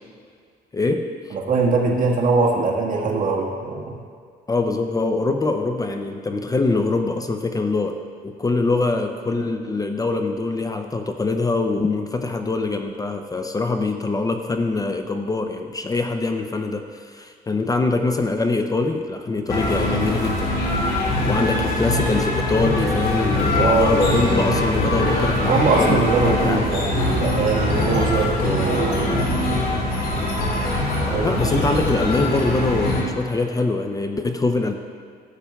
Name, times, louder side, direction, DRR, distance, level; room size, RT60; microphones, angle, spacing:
voice 1, 0.7-1.4 4.5-8.0 8.2-20.5 21.3-26.7 31.1-34.7, left 3 dB, 20° left, 6 dB, 0.5 m, -23 dB
voice 2, 1.3-4.0 19.7-19.8 23.6-24.1 25.5-29.3 31.0-31.5, right 4 dB, 55° right, -2 dB, 1.6 m, -22 dB
sound 1, 19.5-33.0, left 1 dB, 60° left, 2.2 m, -22 dB
14.5 x 8.2 x 2.3 m, 2.2 s
cardioid pair, 100°, 17 cm